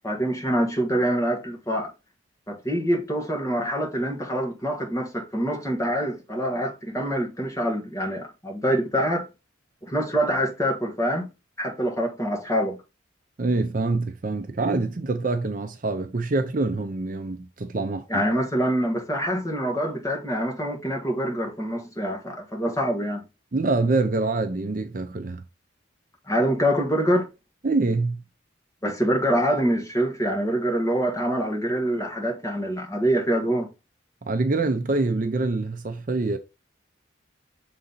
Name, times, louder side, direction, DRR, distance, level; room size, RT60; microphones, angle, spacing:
voice 1, 0.0-1.9 2.5-9.3 9.8-11.3 11.6-12.8 18.1-23.3 26.3-27.3 28.8-33.7, equal, 15° left, 1.4 m, -25 dB
voice 2, 13.4-18.2 23.5-25.4 27.6-28.2 34.2-36.4, right 3 dB, 40° right, 0.5 m, -25 dB
6.3 x 4.0 x 4.0 m
head